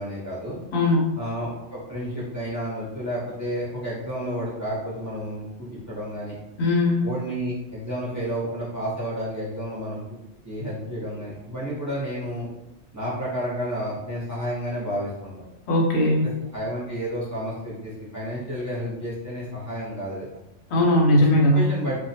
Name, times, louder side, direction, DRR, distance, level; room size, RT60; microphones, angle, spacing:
voice 1, 0.0-0.6 1.2-6.4 7.0-10.2 10.4-12.5 12.9-15.5 16.2-20.3 21.2-21.3 21.5-22.0, equal, 20° right, -7 dB, 0.5 m, -31 dB
voice 2, 0.7-1.1 6.6-7.1 15.7-16.3 20.7-21.6, left 1 dB, 70° left, -2 dB, 0.8 m, -19 dB
2.2 x 2.1 x 2.7 m, 0.92 s
omnidirectional pair, 1.2 m